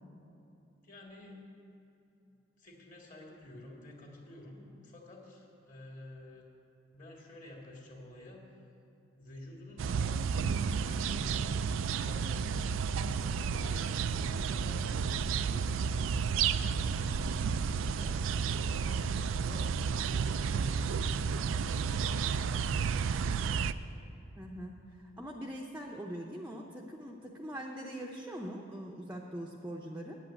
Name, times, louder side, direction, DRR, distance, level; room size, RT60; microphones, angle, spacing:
voice 1, 0.8-1.4 2.6-6.5 6.9-8.5 9.1-12.5 13.0-17.1 17.9-23.0, left 1 dB, 40° left, -1 dB, 2.1 m, -50 dB
sound 1, 9.8-23.7, right 6 dB, 80° right, 0.4 m, -31 dB
voice 2, 24.4-30.2, equal, 10° right, -1 dB, 0.7 m, -42 dB
8.5 x 8.3 x 9.0 m, 2.8 s
head